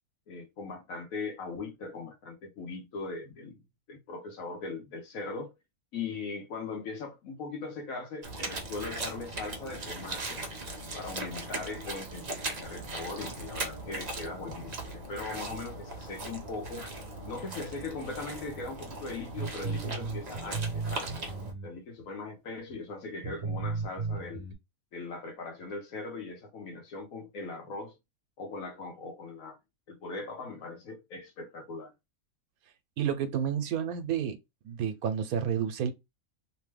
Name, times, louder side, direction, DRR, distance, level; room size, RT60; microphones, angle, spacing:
voice 1, 0.3-3.6 3.9-5.5 5.9-10.4 10.9-16.9 17.3-21.3 21.6-24.4 24.9-28.0 28.4-29.6 29.9-31.9, left 3 dB, 70° left, 1.2 m, -40 dB
sound 1, 8.2-21.5, right 2 dB, 40° right, 0.6 m, -39 dB
sound 2, 19.3-22.0 22.7-22.8 23.2-24.5, right 4 dB, 55° right, 1.0 m, -34 dB
voice 2, 33.0-34.4 34.6-35.9, right 8 dB, 80° right, 1.1 m, -30 dB
3.0 x 2.1 x 3.2 m
omnidirectional pair, 1.6 m